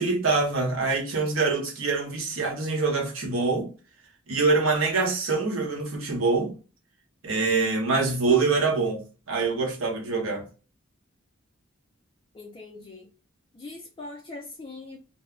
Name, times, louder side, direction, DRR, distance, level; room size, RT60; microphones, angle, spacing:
voice 1, 0.0-3.7 4.3-6.5 7.2-10.4, right 3 dB, 80° right, 0.9 m, -25 dB
voice 2, 12.3-13.1 13.5-15.0, left 2 dB, 25° left, 0.4 m, -41 dB
2.1 x 2.0 x 3.6 m
head